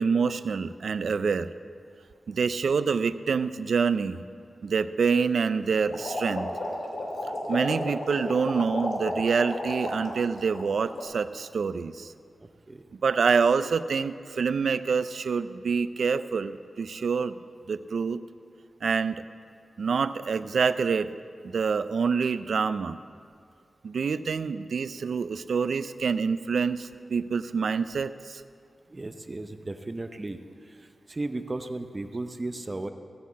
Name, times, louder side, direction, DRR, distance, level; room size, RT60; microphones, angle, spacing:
voice 1, 0.0-1.5 2.3-4.2 4.6-6.5 7.5-12.1 13.0-17.4 17.7-18.2 18.8-19.2 19.8-21.1 21.5-23.0 23.8-28.4, right 5 dB, 80° right, 13 dB, 0.4 m, -26 dB
sound 1, 5.9-10.2 10.5-11.0, left 1 dB, 85° left, 2.5 m, -32 dB
voice 2, 12.4-12.9 28.9-30.4 30.7-32.9, right 2 dB, 25° right, 8 dB, 0.6 m, -35 dB
16.0 x 5.9 x 8.3 m, 2.2 s
wide cardioid pair, 130°, 0 cm